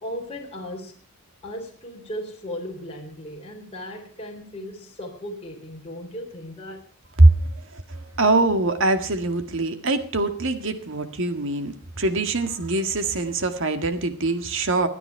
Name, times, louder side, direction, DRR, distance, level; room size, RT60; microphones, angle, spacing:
voice 1, 0.0-1.0 1.4-6.8, equal, 25° left, -1 dB, 3.8 m, -36 dB
voice 2, 7.2-14.9, right 2 dB, 60° right, 9 dB, 1.9 m, -22 dB
25.0 x 9.9 x 4.6 m, 0.40 s
head